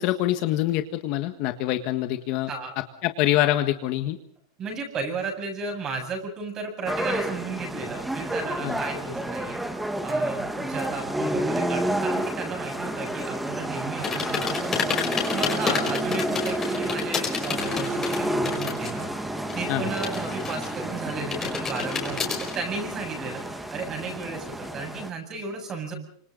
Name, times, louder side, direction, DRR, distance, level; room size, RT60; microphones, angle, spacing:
voice 1, 0.0-2.5 3.0-4.2 8.6-8.8 19.7-19.9, left 14 dB, 40° left, 8 dB, 1.6 m, -25 dB
voice 2, 2.5-2.8 4.6-9.6 10.0-25.9, right 4 dB, 25° right, 4 dB, 7.8 m, -34 dB
sound 1, 6.8-25.1, right 1 dB, 5° right, 1.7 m, -30 dB
sound 2, 14.0-19.0 19.3-20.9 21.3-22.6, left 7 dB, 15° left, 5.5 m, -29 dB
28.5 x 26.0 x 4.0 m, 0.63 s
supercardioid pair, 155°, 2 cm